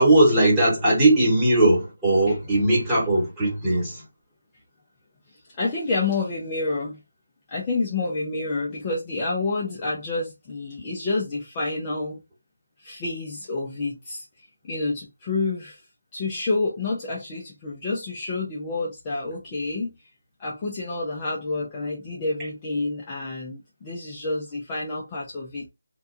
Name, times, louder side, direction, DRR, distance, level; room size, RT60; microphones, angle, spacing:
voice 1, 0.0-4.0, right 1 dB, 10° right, 1.2 m, -19 dB
voice 2, 5.5-7.0 7.5-12.2 12.8-14.3 14.6-15.8 16.1-19.9 20.4-25.7, left 3 dB, 15° left, 0.4 m, -28 dB
2.6 x 2.2 x 2.4 m
figure-of-eight pair, 170°, 0 cm